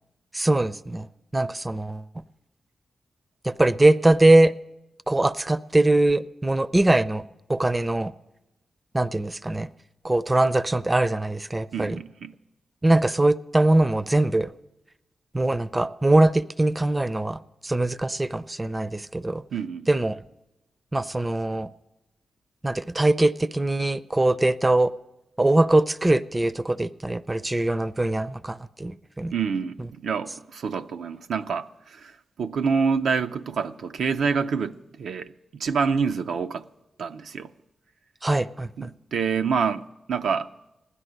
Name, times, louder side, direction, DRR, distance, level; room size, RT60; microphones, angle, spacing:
voice 1, 0.3-1.1 1.3-2.1 3.4-4.5 5.1-7.2 7.5-8.1 8.9-9.7 10.0-12.0 12.8-14.5 15.3-19.4 19.9-20.2 20.9-21.7 22.6-24.9 25.4-29.3 38.2-38.9, right 2 dB, 20° right, 0.5 m, -22 dB
voice 2, 11.7-12.3 19.5-19.9 29.3-32.1 32.4-36.7 37.0-37.5 38.8-40.5, right 5 dB, 85° right, 0.5 m, -27 dB
16.0 x 11.0 x 7.9 m
cardioid pair, 75°, 0 cm